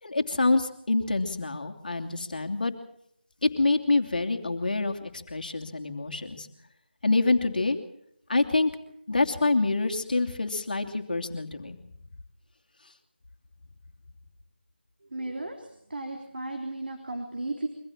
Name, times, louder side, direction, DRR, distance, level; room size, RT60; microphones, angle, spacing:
voice 1, 0.0-2.7 3.4-6.5 7.0-7.8 8.3-8.7 9.1-11.8, left 3 dB, 50° left, 6 dB, 3.0 m, -26 dB
voice 2, 15.1-17.7, right 2 dB, 60° right, 3 dB, 3.3 m, -35 dB
24.0 x 15.5 x 7.4 m, 0.73 s
figure-of-eight pair, 170°, 6 cm